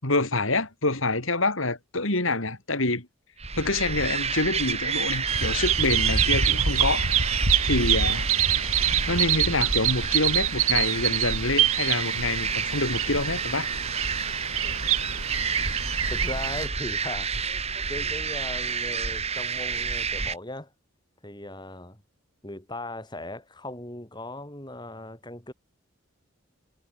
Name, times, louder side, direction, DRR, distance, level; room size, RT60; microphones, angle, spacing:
voice 1, 0.0-3.1 3.6-7.0 7.6-8.3 9.1-13.7, left 2 dB, 70° left, 5.0 m, -26 dB
sound 1, 3.4-20.4, right 5 dB, 30° right, 2.6 m, -30 dB
Bird vocalization bird call bird song, 5.3-16.7, right 8 dB, 85° right, 6.5 m, -26 dB
voice 2, 16.1-17.3 17.9-20.7 21.2-22.0 22.4-25.5, left 1 dB, 20° left, 4.6 m, -38 dB
head